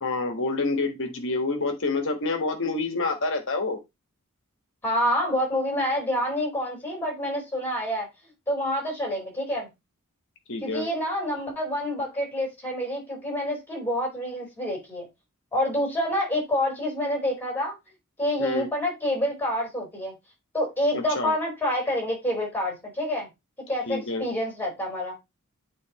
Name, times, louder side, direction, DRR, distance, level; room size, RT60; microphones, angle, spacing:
voice 1, 0.0-3.8 10.5-10.9 18.4-18.7 20.9-21.3 23.9-24.3, left 3 dB, 60° left, 1.5 m, -28 dB
voice 2, 4.8-8.1 8.5-9.7 10.6-15.1 15.5-17.7 18.2-20.1 20.5-23.3 23.7-25.1, left 1 dB, 10° left, 4.2 m, -27 dB
9.1 x 4.2 x 3.0 m
head